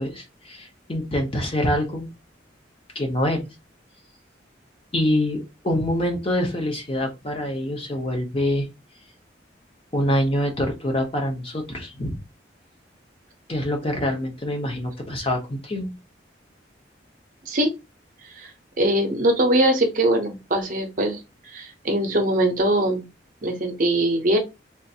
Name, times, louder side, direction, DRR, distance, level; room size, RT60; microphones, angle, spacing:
voice 1, 0.0-2.1 2.9-3.4 4.9-8.7 9.9-12.2 13.5-15.9, left 1 dB, 30° left, 2 dB, 0.9 m, -25 dB
voice 2, 18.8-21.2 21.5-23.1 23.4-24.4, right 1 dB, 45° right, 4 dB, 0.7 m, -21 dB
3.6 x 2.5 x 2.7 m, 0.25 s
head